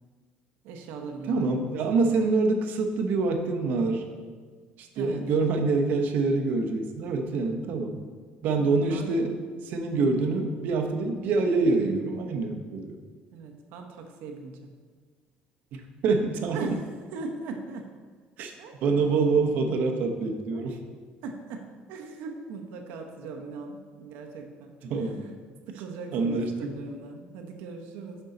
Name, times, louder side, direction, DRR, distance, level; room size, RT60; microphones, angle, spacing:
voice 1, 0.6-2.4 5.0-5.2 8.6-9.2 13.3-14.7 16.5-17.9 18.6-18.7 20.2-20.8 21.2-25.3 25.7-28.2, right 4 dB, 85° right, 3 dB, 0.9 m, -40 dB
voice 2, 1.3-4.0 4.8-8.0 8.4-9.4 9.6-13.0 15.7-16.7 18.4-18.5 18.8-20.8 24.8-25.2 26.1-26.7, right 3 dB, 55° right, 4 dB, 0.7 m, -26 dB
6.6 x 5.4 x 3.8 m, 1.5 s
cardioid pair, 170°, 3 cm